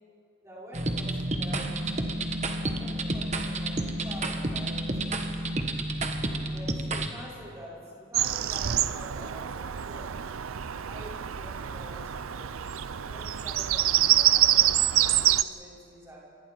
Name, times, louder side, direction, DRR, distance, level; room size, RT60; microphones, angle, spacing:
voice 1, 0.4-2.1 2.6-5.4 6.5-10.1 10.8-12.7 13.1-16.2, equal, 15° right, -6 dB, 5.4 m, -46 dB
sound 1, 0.7-7.1, right 1 dB, 35° right, 1.4 m, -30 dB
Bird vocalization bird call bird song, 8.1-15.4, right 12 dB, 80° right, 0.6 m, -26 dB
29.0 x 24.5 x 4.6 m, 2.4 s
head